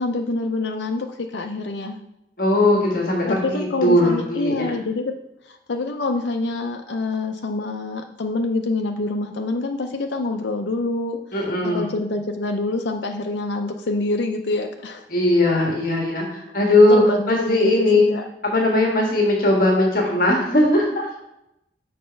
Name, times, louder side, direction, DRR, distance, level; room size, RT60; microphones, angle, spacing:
voice 1, 0.0-2.0 3.3-5.1 5.5-15.1 16.5-16.6 16.8-18.2, left 2 dB, 85° left, 3 dB, 0.6 m, -26 dB
voice 2, 2.4-4.7 11.3-11.9 15.1-18.1 18.4-21.2, left 1 dB, 50° left, -1 dB, 1.5 m, -19 dB
6.6 x 4.2 x 5.5 m, 0.85 s
head